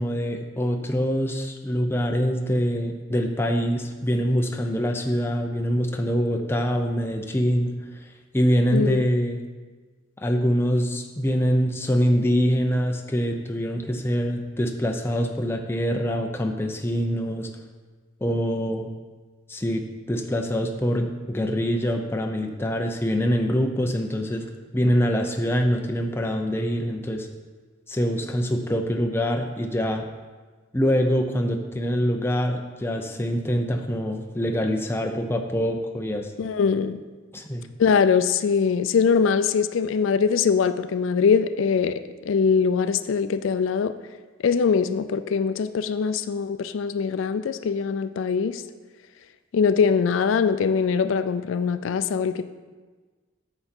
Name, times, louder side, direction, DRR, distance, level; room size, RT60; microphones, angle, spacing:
voice 1, 0.0-7.7 8.3-9.4 10.2-17.5 18.2-18.9 19.5-24.5 24.7-27.3 27.9-30.1 30.7-36.3 37.3-37.6, equal, 10° left, 3 dB, 0.5 m, -24 dB
voice 2, 8.7-9.0 36.4-37.0 37.8-43.9 44.4-48.6 49.5-52.4, left 6 dB, 75° left, 11 dB, 0.4 m, -22 dB
8.9 x 5.8 x 4.3 m, 1.4 s
head